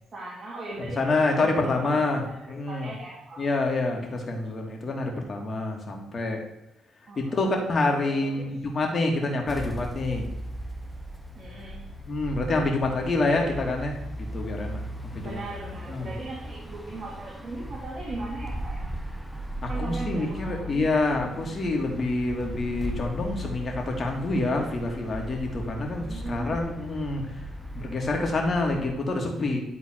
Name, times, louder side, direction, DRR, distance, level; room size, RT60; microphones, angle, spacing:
voice 1, 0.1-3.5 7.1-7.6 8.1-8.5 11.3-11.9 13.2-13.8 15.2-19.2 19.7-20.9 26.0-26.7, right 2 dB, 40° right, -4 dB, 2.2 m, -39 dB
voice 2, 0.8-2.9 3.4-6.4 7.2-10.3 12.1-14.0 14.3-14.9 15.1-15.4 15.9-16.1 19.6-27.2 27.7-29.6, left 2 dB, 40° left, 1 dB, 2.0 m, -27 dB
sound 1, 9.5-28.9, equal, ahead, 0.9 m, -37 dB
11.0 x 3.9 x 4.4 m, 0.94 s
cardioid pair, 90°, 0 cm